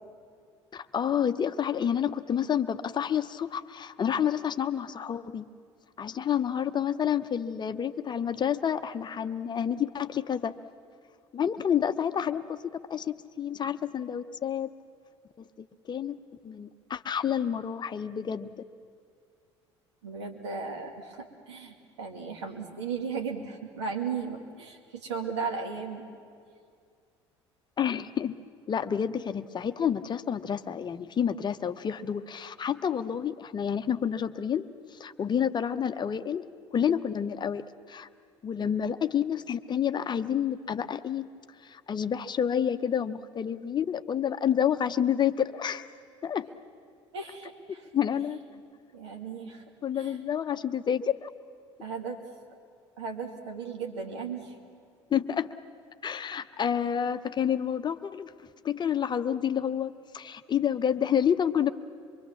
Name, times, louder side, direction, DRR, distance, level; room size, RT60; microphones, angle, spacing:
voice 1, 0.7-5.5 6.0-10.6 11.3-12.6 12.9-14.7 15.9-18.5 27.8-28.3 28.7-36.5 36.7-38.1 38.4-41.3 41.6-45.9 46.2-46.5 47.7-48.4 49.8-51.3 55.1-55.5 56.0-58.3 58.6-61.7, left 8 dB, 30° left, 10 dB, 0.8 m, -29 dB
voice 2, 20.0-26.0 47.1-47.8 48.9-49.6 49.9-50.2 51.8-52.2 53.0-54.5, right 5 dB, 75° right, 3 dB, 2.2 m, -36 dB
24.5 x 24.0 x 7.2 m, 2.3 s
figure-of-eight pair, 60°, 15 cm